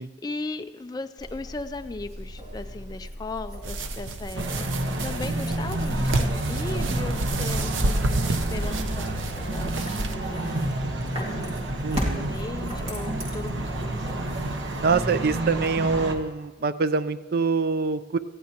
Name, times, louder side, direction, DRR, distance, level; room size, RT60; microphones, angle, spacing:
voice 1, 0.0-14.4, left 2 dB, 20° left, 7 dB, 0.3 m, -38 dB
sound 1, 1.2-15.7, equal, 30° right, 2.4 m, -37 dB
sound 2, 3.6-10.1, right 2 dB, 85° right, 0.8 m, -30 dB
sound 3, 4.3-16.1, right 1 dB, 70° right, 1.1 m, -29 dB
voice 2, 11.8-12.3 14.8-18.2, right 4 dB, 50° right, 13 dB, 0.5 m, -25 dB
18.5 x 14.5 x 2.9 m, 1.4 s
head